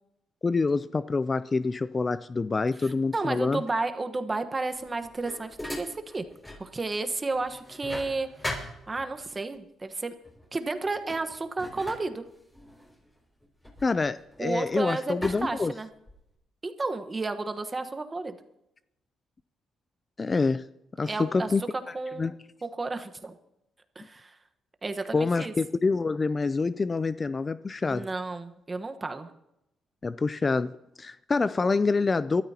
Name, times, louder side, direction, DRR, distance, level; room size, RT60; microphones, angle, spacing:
voice 1, 0.4-3.6 13.8-15.7 20.2-20.6 21.0-21.6 22.2-22.3 25.1-28.1 30.0-30.7 31.0-32.4, left 4 dB, 30° left, 0.4 m, -26 dB
voice 2, 2.8-6.2 6.6-8.3 8.9-10.2 10.5-12.2 14.4-15.9 16.6-18.4 21.0-21.5 21.9-22.3 22.6-23.3 23.9-24.3 24.8-25.5 27.9-29.3, right 3 dB, 25° right, 1.2 m, -32 dB
sound 1, 4.7-6.7 7.1-9.4 10.2-10.5 10.8-14.7 15.2-16.3, left 1 dB, 15° left, 5.7 m, -40 dB
23.5 x 13.0 x 2.9 m
cardioid pair, 90°, 0 cm